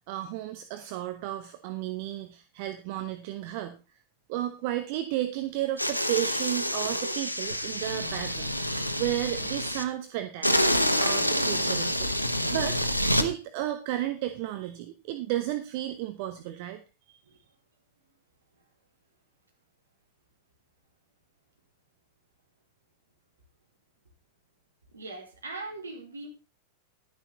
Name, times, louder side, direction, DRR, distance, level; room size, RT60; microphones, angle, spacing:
voice 1, 0.1-3.7 4.3-12.8 13.2-16.8, right 14 dB, 45° right, 8 dB, 1.0 m, -33 dB
sound 1, 5.8-9.8 10.4-13.3, equal, 85° left, 1.1 m, -27 dB
voice 2, 24.9-26.3, right 3 dB, 75° right, 1 dB, 4.3 m, -40 dB
11.5 x 10.0 x 4.1 m, 0.30 s
figure-of-eight pair, 90°, 0 cm